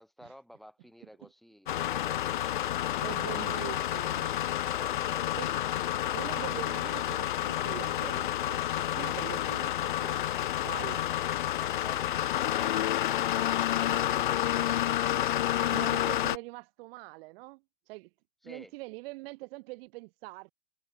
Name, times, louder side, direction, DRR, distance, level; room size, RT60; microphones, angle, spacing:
voice 1, 0.0-2.5 4.6-5.4 18.4-18.7, equal, ahead, 5.3 m, -52 dB
sound 1, 1.7-16.4, left 12 dB, 35° left, 0.4 m, -29 dB
voice 2, 2.6-4.5 5.4-5.5 5.9-8.6 8.9-11.0 15.7-18.1 18.4-20.5, right 24 dB, 40° right, 2.0 m, -43 dB
figure-of-eight pair, 105°, 47 cm